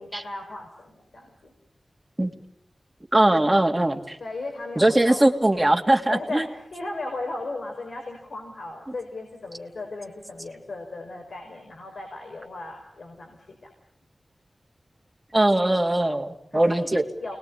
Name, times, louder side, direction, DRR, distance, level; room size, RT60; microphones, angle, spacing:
voice 1, 0.0-1.5 4.2-5.3 6.1-13.7 16.5-17.4, left 2 dB, 90° left, 3 dB, 5.1 m, -36 dB
voice 2, 3.1-4.2 4.8-6.4 15.3-17.1, right 1 dB, 20° right, 3 dB, 2.9 m, -20 dB
29.5 x 21.0 x 9.5 m, 0.76 s
wide cardioid pair, 65°, 0 cm